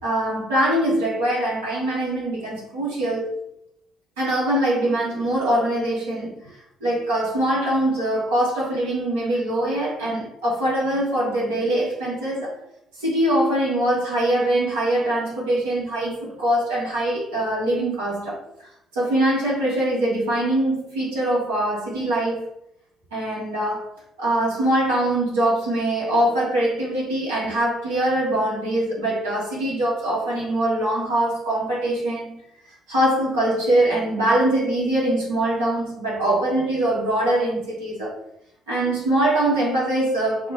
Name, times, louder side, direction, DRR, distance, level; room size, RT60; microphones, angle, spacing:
voice 1, 0.0-3.3 4.2-6.5 6.8-12.6 13.0-22.4 23.1-23.9 24.2-32.4 32.9-38.2 38.7-40.5, right 1 dB, 75° right, 1.5 m, -23 dB
2.9 x 2.9 x 3.9 m
figure-of-eight pair, 45°, 0 cm